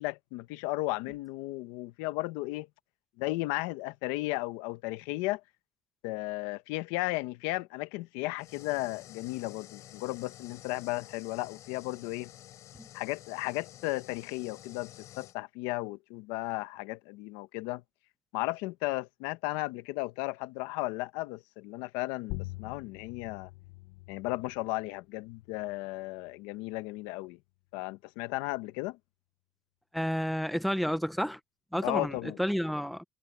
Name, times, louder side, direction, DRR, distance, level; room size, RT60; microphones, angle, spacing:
voice 1, 0.0-2.7 3.2-5.4 6.0-12.3 12.9-17.8 18.3-23.5 24.1-27.4 27.7-29.0 31.8-32.4, left 20 dB, 90° left, 1.1 m, -35 dB
sound 1, 8.4-15.4, left 13 dB, 45° left, 3.5 m, -51 dB
sound 2, 22.3-27.4, left 21 dB, 75° left, 0.7 m, -46 dB
voice 2, 29.9-31.4 31.7-33.0, equal, ahead, 0.6 m, -30 dB
cardioid pair, 175°, 8 cm